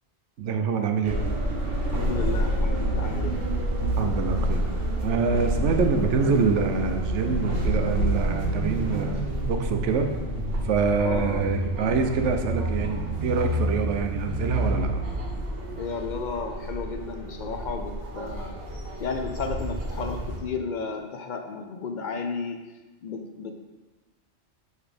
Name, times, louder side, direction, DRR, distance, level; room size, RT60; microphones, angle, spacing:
voice 1, 0.4-1.2 4.0-4.7 5.0-9.2 9.5-10.1 10.6-15.0, right 5 dB, 85° right, 5 dB, 1.0 m, -25 dB
sound 1, 1.0-20.4, right 1 dB, 60° right, 1.1 m, -28 dB
voice 2, 1.9-3.4 11.0-11.4 15.8-18.6 19.0-22.6 23.0-23.6, left 5 dB, 60° left, 5 dB, 0.5 m, -33 dB
5.4 x 4.0 x 5.1 m, 1.2 s
omnidirectional pair, 1.2 m